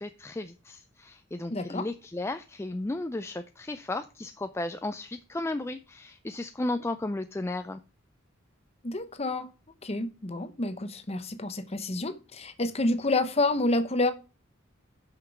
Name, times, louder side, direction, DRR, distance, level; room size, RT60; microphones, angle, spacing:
voice 1, 0.0-7.8, left 2 dB, 15° left, 0.4 m, -34 dB
voice 2, 1.5-1.9 8.8-9.5 9.8-14.1, left 2 dB, 30° left, 0.9 m, -28 dB
8.3 x 5.9 x 5.9 m
head